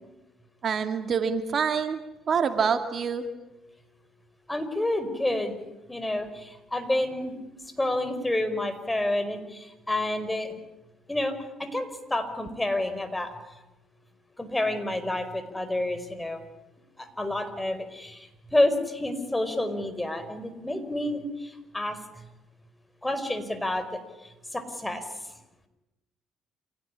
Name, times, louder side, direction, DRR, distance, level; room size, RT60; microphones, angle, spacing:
voice 1, 0.6-2.0 2.3-3.2, right 6 dB, 50° right, 7 dB, 2.3 m, -26 dB
voice 2, 4.5-5.6 5.9-7.3 7.8-10.5 11.1-11.3 11.6-13.4 14.4-16.4 17.0-22.2 23.0-23.8 24.5-25.0, left 1 dB, 15° left, 10 dB, 5.1 m, -29 dB
28.0 x 17.5 x 10.0 m, 0.98 s
supercardioid pair, 60°, 0 cm